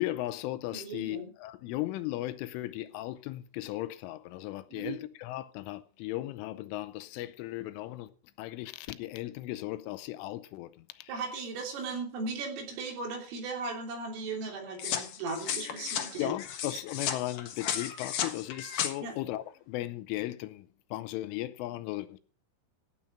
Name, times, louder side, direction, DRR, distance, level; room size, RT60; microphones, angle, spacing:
voice 1, 0.0-8.1 8.4-11.2 16.2-22.2, left 16 dB, 80° left, 3.2 m, -36 dB
voice 2, 0.7-1.3 4.7-5.0 11.1-16.3 16.7-16.8 19.0-19.1, right 3 dB, 80° right, 5.7 m, -37 dB
sound 1, 14.8-18.9, left 9 dB, 65° left, 2.1 m, -34 dB
16.0 x 7.8 x 5.8 m
omnidirectional pair, 5.8 m